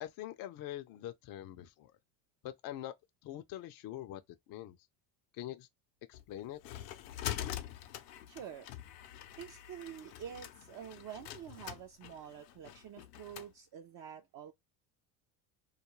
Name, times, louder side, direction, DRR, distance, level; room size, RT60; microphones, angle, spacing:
voice 1, 0.0-1.9 2.4-2.9 3.2-4.2 4.5-4.8 5.3-5.7 6.1-6.6, left 13 dB, 45° left, 0.5 m, -44 dB
sound 1, 6.1-13.5, left 12 dB, 85° left, 0.6 m, -44 dB
voice 2, 8.3-8.7 9.4-14.5, right 9 dB, 45° right, 0.5 m, -47 dB
2.3 x 2.2 x 3.0 m
supercardioid pair, 80°, 49 cm